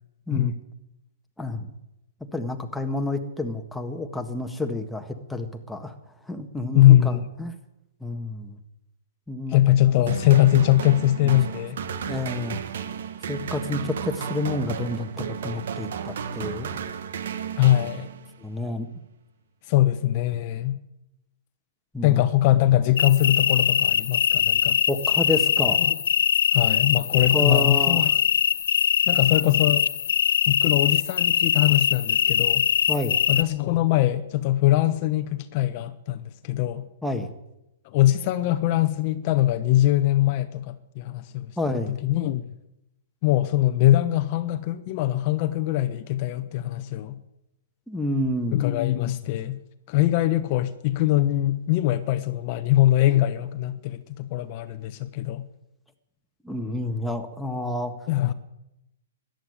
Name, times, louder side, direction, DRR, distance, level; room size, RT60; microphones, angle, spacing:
voice 1, 1.4-1.7 2.3-5.9 6.3-7.5 8.0-8.6 9.3-10.0 12.1-12.6 13.3-16.8 18.4-18.9 21.9-22.2 24.9-25.9 27.3-28.0 32.9-33.2 37.0-37.3 41.6-42.0 47.9-48.7 56.4-57.9, left 2 dB, 5° left, 1.7 m, -29 dB
voice 2, 6.7-7.2 9.5-11.8 17.6-18.1 19.7-20.8 22.0-24.8 25.8-26.0 26.5-28.1 29.1-29.8 30.5-32.7 33.3-36.9 37.8-41.5 41.9-42.4 43.2-47.2 48.5-49.6 49.9-55.4 58.1-58.3, left 14 dB, 45° left, 1.0 m, -22 dB
sound 1, 10.1-18.4, right 7 dB, 65° right, 1.5 m, -33 dB
sound 2, 23.0-33.4, left 9 dB, 70° left, 0.7 m, -22 dB
14.0 x 10.5 x 9.7 m
hypercardioid pair, 130°, 0 cm